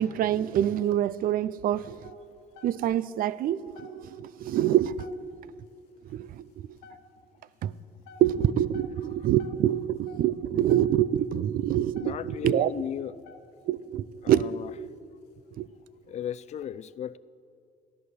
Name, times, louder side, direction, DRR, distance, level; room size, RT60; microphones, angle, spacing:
voice 1, 0.0-2.1 2.6-4.9 6.1-6.7 7.6-7.7 8.2-12.2 12.4-12.7 13.7-14.5 15.6-15.7, right 11 dB, 60° right, 18 dB, 0.5 m, -26 dB
sound 1, 1.9-3.1 3.5-3.6 3.7-4.3 4.7-5.5 5.9-6.1 6.5-7.4 7.8-11.2 11.7-11.8 12.0-12.5 13.0-13.8 14.3-14.5 15.0-15.2 15.7-15.9 16.3-16.6, left 5 dB, 90° left, 0.9 m, -52 dB
voice 2, 12.0-13.1 14.2-14.7 16.1-17.2, left 9 dB, 40° left, 18 dB, 0.4 m, -35 dB
14.5 x 11.0 x 6.4 m, 2.3 s
cardioid pair, 110°, 17 cm